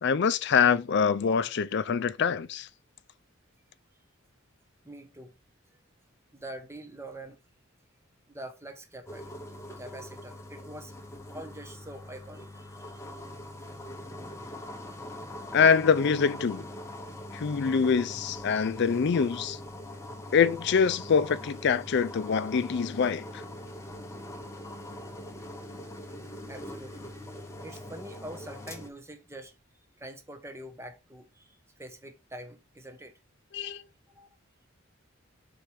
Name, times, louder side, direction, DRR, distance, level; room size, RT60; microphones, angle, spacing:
voice 1, 0.0-2.7 15.5-16.6 17.3-19.6 20.3-23.2 33.5-33.8, left 6 dB, 55° left, 0.4 m, -24 dB
voice 2, 4.8-5.3 6.3-7.4 8.3-9.3 9.8-10.9 11.3-13.1 24.4-24.5 24.8-25.1 26.5-27.1 27.6-29.5 30.0-33.1 34.1-34.3, right 1 dB, 10° right, 0.9 m, -45 dB
sound 1, 9.1-28.9, left 1 dB, 15° left, 0.8 m, -42 dB
5.2 x 4.3 x 4.6 m
head